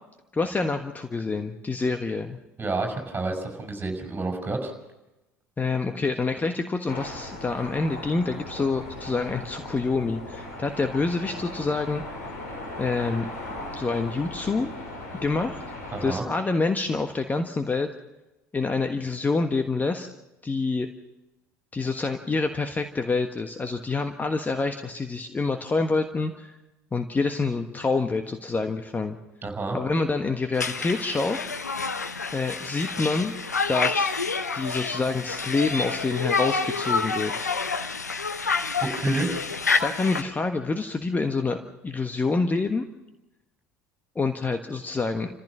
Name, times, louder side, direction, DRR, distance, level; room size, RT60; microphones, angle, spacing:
voice 1, 0.3-2.4 5.6-12.0 12.8-13.3 13.7-14.7 15.1-15.6 16.0-17.9 18.5-20.1 20.4-20.9 21.7-26.6 26.9-29.2 29.7-31.4 32.3-33.3 33.7-34.2 34.5-37.4 39.1-39.2 39.8-41.6 41.8-42.8 44.1-45.3, left 3 dB, 20° left, 6 dB, 1.4 m, -27 dB
voice 2, 2.6-4.7 15.9-16.2 29.4-29.8 39.0-39.3, right 3 dB, 20° right, 3 dB, 6.1 m, -29 dB
sound 1, 6.9-16.2, left 2 dB, 75° left, 5.2 m, -38 dB
Conversation, 30.5-40.2, left 4 dB, 90° left, 0.8 m, -28 dB
29.5 x 15.5 x 6.2 m, 1.0 s
figure-of-eight pair, 65°, 9 cm